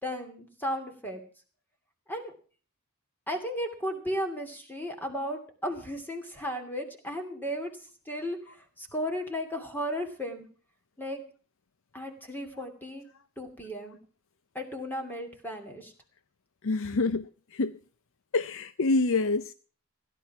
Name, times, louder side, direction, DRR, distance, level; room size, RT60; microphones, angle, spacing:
voice 1, 0.0-1.2 2.1-2.3 3.3-7.7 8.1-10.5 11.0-11.2 11.9-13.1 13.4-14.0 14.5-15.9, equal, 10° left, 2.7 m, -35 dB
voice 2, 16.6-17.8 18.3-19.5, left 3 dB, 60° left, 0.6 m, -27 dB
16.5 x 11.0 x 5.9 m
head